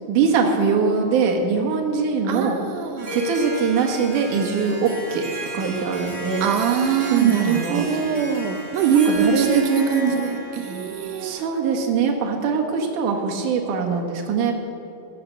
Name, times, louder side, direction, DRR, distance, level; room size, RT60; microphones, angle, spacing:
voice 1, 0.1-2.6 3.1-5.2 5.5-6.5 7.1-7.8 8.9-10.2 11.2-14.5, right 5 dB, 60° right, 1 dB, 2.8 m, -22 dB
voice 2, 2.3-3.2 6.4-11.4 11.7-12.1, right 7 dB, 80° right, 6 dB, 1.8 m, -23 dB
Harp, 3.0-11.7, left 1 dB, 15° right, 2.3 m, -34 dB
15.5 x 10.5 x 6.6 m, 2.8 s
omnidirectional pair, 4.4 m